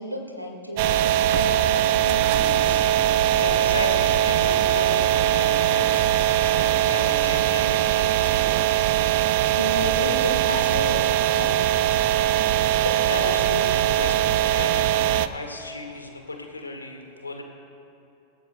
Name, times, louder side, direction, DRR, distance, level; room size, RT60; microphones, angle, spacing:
voice 1, 0.0-2.8 9.3-11.5, equal, 90° right, 1 dB, 2.1 m, -32 dB
sound 1, 0.8-15.3, right 12 dB, 50° right, 0.5 m, -21 dB
voice 2, 3.0-8.4 10.0-10.2 12.8-17.4, left 2 dB, 80° left, 3 dB, 1.8 m, -34 dB
27.5 x 14.0 x 2.3 m, 2.9 s
figure-of-eight pair, 90°, 0 cm